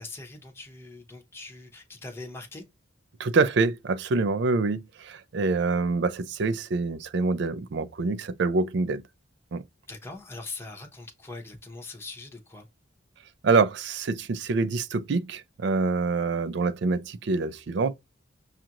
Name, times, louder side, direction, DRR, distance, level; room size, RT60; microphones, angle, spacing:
voice 1, 0.0-2.6 9.9-12.7, left 3 dB, 10° left, 0.7 m, -41 dB
voice 2, 3.2-9.0 9.5-9.6 13.4-17.9, right 4 dB, 60° right, 0.4 m, -26 dB
6.1 x 2.4 x 2.8 m
head